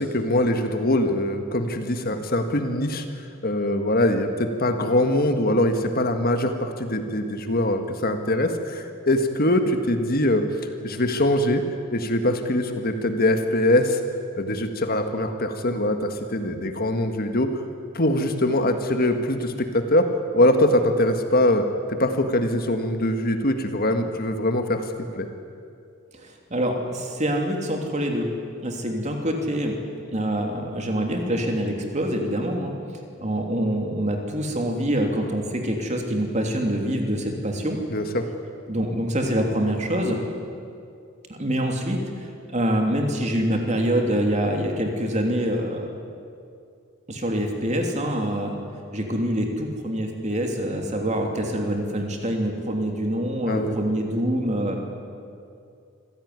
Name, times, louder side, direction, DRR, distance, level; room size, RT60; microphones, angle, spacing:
voice 1, 0.0-10.4 10.8-11.6 11.9-14.0 14.4-17.5 17.9-20.1 20.3-24.8 25.1-25.3 37.9-38.3 53.5-53.7, left 1 dB, 45° left, 6 dB, 1.6 m, -23 dB
voice 2, 26.1-28.3 28.6-29.8 30.1-32.7 33.2-37.8 38.7-40.2 41.3-45.9 47.1-48.6 48.9-54.8, equal, 35° right, 2 dB, 3.1 m, -25 dB
26.0 x 16.0 x 9.6 m, 2.4 s
head